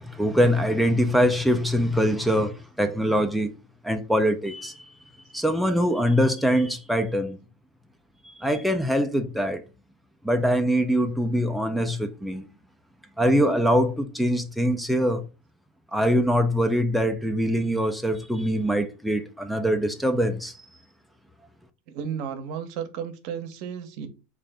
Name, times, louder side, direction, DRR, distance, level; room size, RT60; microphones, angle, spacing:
voice 1, 0.0-3.5 3.8-4.8 5.3-7.4 8.3-9.6 10.2-12.5 13.2-15.2 15.9-20.5, equal, ahead, 0.4 m, -23 dB
voice 2, 21.9-24.1, right 8 dB, 60° right, 0.7 m, -33 dB
3.7 x 2.5 x 3.4 m
supercardioid pair, 125°, 0 cm